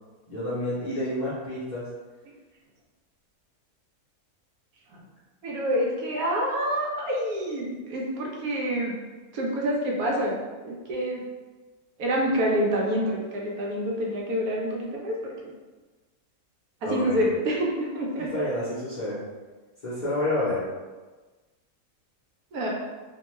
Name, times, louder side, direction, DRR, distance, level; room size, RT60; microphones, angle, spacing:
voice 1, 0.3-1.9 16.8-17.3 18.3-19.2 19.8-20.6, left 1 dB, 45° left, -10 dB, 0.7 m, -29 dB
voice 2, 5.4-9.0 9.3-10.4 10.6-11.2 12.0-15.3 16.8-18.5 22.5-22.7, equal, 80° right, -2 dB, 1.1 m, -27 dB
2.8 x 2.2 x 3.0 m, 1.3 s
omnidirectional pair, 1.5 m